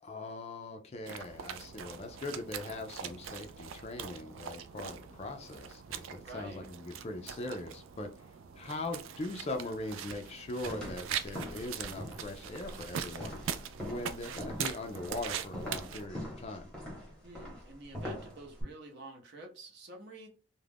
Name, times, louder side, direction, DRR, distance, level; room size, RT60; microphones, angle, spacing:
voice 1, 0.0-8.1 8.6-13.4 13.8-16.7, left 2 dB, 30° left, 0.4 m, -41 dB
sound 1, 1.0-16.1, right 8 dB, 70° right, 0.3 m, -42 dB
voice 2, 6.2-6.7 17.2-20.3, right 2 dB, 55° right, 0.7 m, -48 dB
sound 2, 10.6-18.6, equal, 5° left, 0.9 m, -43 dB
2.4 x 2.1 x 3.3 m
head